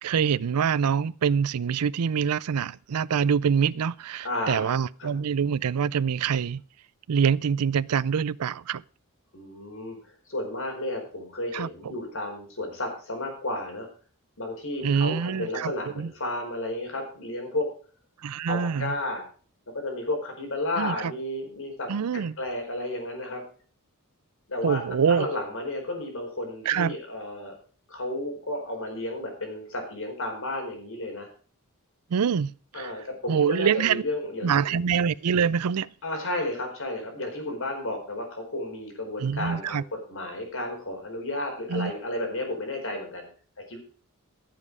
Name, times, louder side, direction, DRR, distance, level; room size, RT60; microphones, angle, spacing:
voice 1, 0.0-6.6 7.1-8.8 11.5-11.9 14.8-16.1 18.2-18.9 20.8-21.1 21.9-22.4 24.6-25.3 26.7-26.9 32.1-32.9 33.3-34.0 34.4-35.9 39.2-39.8 41.7-41.9, right 7 dB, 85° right, 0.5 m, -25 dB
voice 2, 4.2-5.1 9.3-10.0 10.3-13.9 14.4-17.7 18.5-19.2 19.7-23.4 24.5-27.6 27.9-31.3 32.7-34.9 36.0-43.3 43.6-43.8, left 1 dB, 60° left, 4.7 m, -32 dB
16.0 x 7.7 x 4.8 m
head